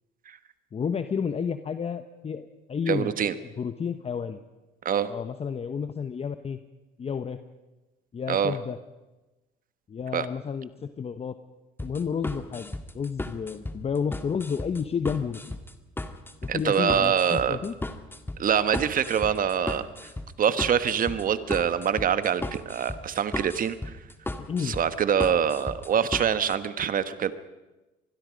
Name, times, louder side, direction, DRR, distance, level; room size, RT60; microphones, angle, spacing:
voice 1, 0.7-3.1 3.6-4.4 5.1-6.6 7.0-7.4 8.1-8.8 9.9-11.3 11.8-15.6 16.4-17.8 24.4-24.8, left 6 dB, 30° left, 10 dB, 1.0 m, -31 dB
voice 2, 2.9-3.3 4.8-5.1 8.3-8.6 10.1-10.3 16.5-17.6 18.4-19.8 20.4-23.8 24.6-27.3, right 8 dB, 45° right, 12 dB, 1.3 m, -25 dB
sound 1, 11.8-26.5, left 2 dB, 10° left, 1.7 m, -36 dB
25.5 x 20.5 x 5.3 m, 1.1 s
supercardioid pair, 85°, 19 cm